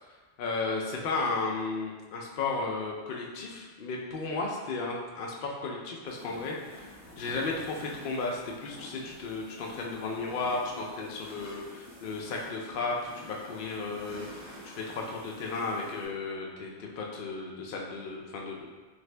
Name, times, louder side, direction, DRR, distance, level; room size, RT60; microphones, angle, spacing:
voice 1, 0.4-18.7, left 3 dB, 60° left, -1 dB, 0.6 m, -34 dB
sound 1, 6.1-16.1, equal, 20° right, 0.5 m, -49 dB
2.8 x 2.5 x 3.2 m, 1.3 s
omnidirectional pair, 1.3 m